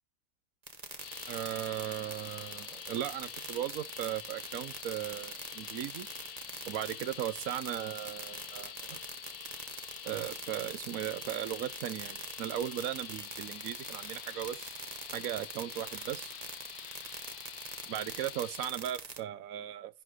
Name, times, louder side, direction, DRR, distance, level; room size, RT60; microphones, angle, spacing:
sound 1, 0.7-19.2, right 3 dB, 25° right, 1.3 m, -43 dB
sound 2, 1.0-18.7, left 10 dB, 80° left, 1.3 m, -47 dB
voice 1, 1.3-6.1 6.7-9.0 10.0-14.7 15.1-16.3 17.9-20.0, right 11 dB, 70° right, 1.1 m, -37 dB
11.0 x 3.6 x 6.5 m
omnidirectional pair, 1.6 m